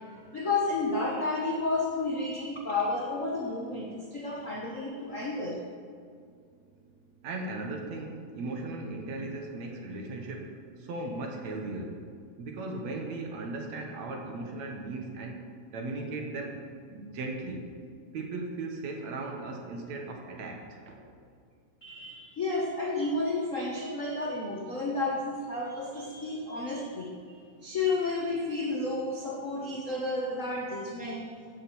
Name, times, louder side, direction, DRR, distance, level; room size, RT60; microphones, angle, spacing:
voice 1, 0.1-5.6 21.8-31.3, left 2 dB, 60° left, -1 dB, 0.8 m, -31 dB
voice 2, 7.2-12.0 12.4-15.4 15.7-17.7 18.1-21.1, right 2 dB, 60° right, 2 dB, 2.6 m, -37 dB
15.5 x 6.7 x 8.0 m, 2.3 s
omnidirectional pair, 3.7 m